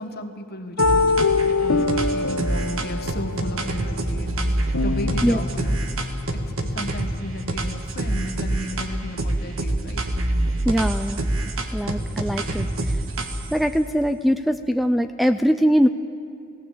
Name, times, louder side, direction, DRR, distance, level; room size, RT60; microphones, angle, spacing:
voice 1, 0.0-10.1, left 1 dB, 50° left, 6 dB, 1.5 m, -34 dB
sound 1, 0.8-7.5, left 3 dB, 80° left, 1.1 m, -25 dB
sound 2, 0.8-1.5 1.9-7.1 7.5-8.9 9.2-13.6, right 1 dB, 70° right, 1.7 m, -26 dB
voice 2, 10.6-11.3 11.7-13.0 13.5-15.9, equal, ahead, 9 dB, 0.4 m, -21 dB
19.0 x 16.5 x 8.5 m, 2.7 s
head